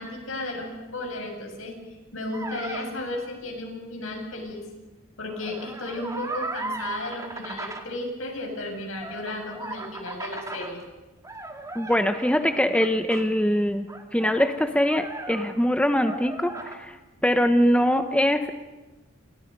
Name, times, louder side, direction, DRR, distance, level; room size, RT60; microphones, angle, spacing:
voice 1, 0.0-1.8 2.1-4.7 5.2-10.8, left 2 dB, 75° left, 2 dB, 7.1 m, -34 dB
sound 1, 2.3-2.9 5.3-7.8 8.9-10.7 11.2-13.2 13.9-15.8 16.0-16.7, right 2 dB, 15° right, 2.4 m, -37 dB
voice 2, 11.7-13.9 14.1-17.0 17.2-18.5, equal, 5° left, 8 dB, 1.0 m, -22 dB
29.0 x 29.0 x 5.4 m, 1.1 s
head